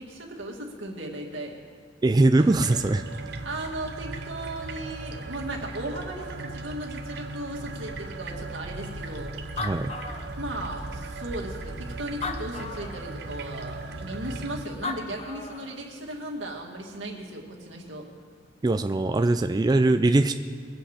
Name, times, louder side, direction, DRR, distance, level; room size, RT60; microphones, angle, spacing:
voice 1, 0.0-1.5 3.4-9.3 10.4-18.1, right 1 dB, 85° right, 0 dB, 2.2 m, -36 dB
voice 2, 2.0-3.0 9.6-9.9 18.6-20.3, right 2 dB, 20° right, 7 dB, 0.3 m, -21 dB
sound 1, 2.4-14.6, right 2 dB, 60° right, 0.9 m, -37 dB
Animal, 9.1-9.2 9.4-10.8 11.5-11.6 12.1-13.1 14.5-14.6 14.8-15.8, left 4 dB, 35° left, 0.9 m, -35 dB
22.5 x 8.0 x 5.1 m, 2.1 s
head